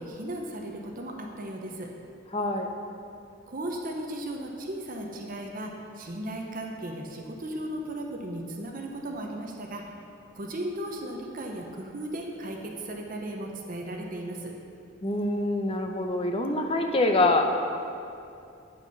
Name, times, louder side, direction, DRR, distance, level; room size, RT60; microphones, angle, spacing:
voice 1, 0.0-1.9 3.5-9.9 10.3-14.5, right 1 dB, 45° right, 1 dB, 0.8 m, -36 dB
voice 2, 2.3-2.7 15.0-17.4, left 2 dB, 25° left, 4 dB, 0.6 m, -25 dB
8.7 x 5.7 x 5.7 m, 2.5 s
head